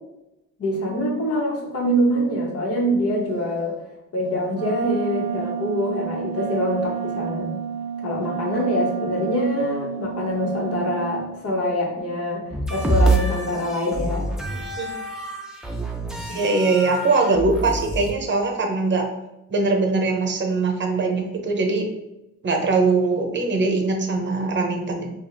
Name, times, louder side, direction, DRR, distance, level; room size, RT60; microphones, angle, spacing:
voice 1, 0.6-3.8 4.1-7.6 8.0-14.3, equal, 50° left, -2 dB, 1.3 m, -24 dB
Wind instrument woodwind instrument, 4.5-11.3, right 8 dB, 70° right, 0.5 m, -30 dB
sound 1, 12.5-18.1, right 2 dB, ahead, 0.6 m, -26 dB
voice 2, 16.3-19.1 19.5-21.9 22.4-25.1, right 3 dB, 40° right, 3 dB, 0.8 m, -21 dB
4.7 x 2.5 x 2.7 m, 0.90 s
cardioid pair, 90°, 30 cm